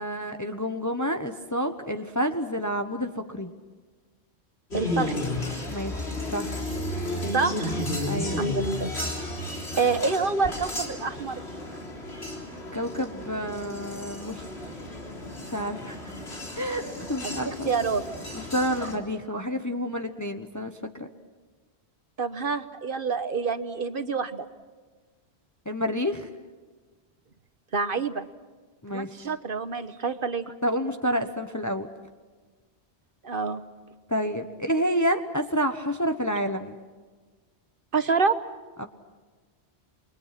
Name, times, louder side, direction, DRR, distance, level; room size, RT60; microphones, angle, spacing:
voice 1, 0.0-3.5 5.7-6.6 8.0-8.5 12.7-14.4 15.2-16.1 16.5-17.7 18.3-21.1 25.6-26.3 28.8-29.3 30.6-31.9 34.1-36.8 38.8-38.9, equal, 15° left, 6 dB, 1.1 m, -29 dB
sound 1, 4.7-19.0, left 1 dB, 70° left, 3.8 m, -33 dB
voice 2, 4.7-5.4 7.3-7.8 8.4-8.9 9.8-11.4 17.2-18.0 19.3-19.4 22.2-24.5 27.7-28.2 28.9-30.5 33.2-33.6 37.9-38.3, right 4 dB, 55° right, 10 dB, 1.3 m, -27 dB
29.0 x 22.5 x 6.0 m, 1.4 s
omnidirectional pair, 1.1 m